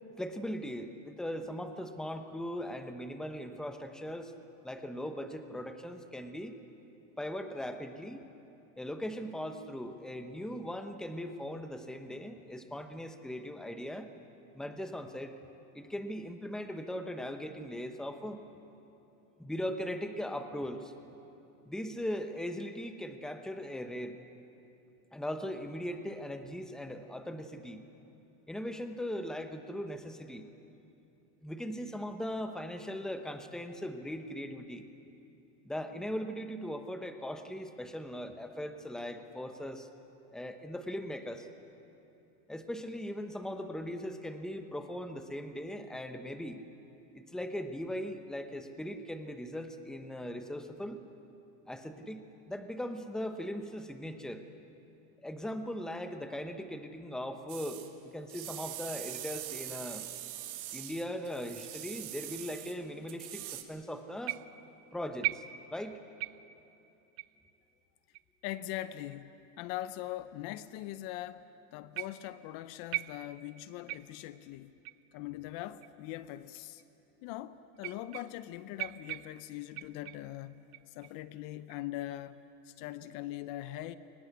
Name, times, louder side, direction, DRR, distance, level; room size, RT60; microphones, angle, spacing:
voice 1, 0.2-4.3 4.6-6.6 7.2-8.2 8.8-14.1 14.5-15.3 15.7-18.4 19.4-20.9 21.6-24.2 25.1-27.8 28.5-30.5 31.4-34.8 35.6-39.9 40.3-41.5 42.5-46.6 47.1-51.0 51.7-54.4 55.2-60.1 60.7-64.4 64.9-65.4 65.7-66.0, equal, ahead, 7 dB, 1.0 m, -39 dB
sound 1, 57.5-57.9 58.3-62.8 63.1-63.6, right 14 dB, 90° right, 1.9 m, -43 dB
sound 2, 64.3-64.7 65.2-65.9 66.2-66.6 67.2-67.4 68.1-68.2 69.1-69.2 70.1-70.2 72.0-72.4 72.9-73.5 73.9-74.3 74.9-75.1 75.8-75.9 76.8-76.9 77.8-78.5 78.8-80.3 80.7-81.2 81.7-82.1, right 20 dB, 45° right, 0.5 m, -40 dB
voice 2, 68.4-74.7 75.1-76.8 77.2-84.0, left 14 dB, 55° left, 14 dB, 0.7 m, -42 dB
22.5 x 19.5 x 8.3 m, 2.9 s
supercardioid pair, 130°, 42 cm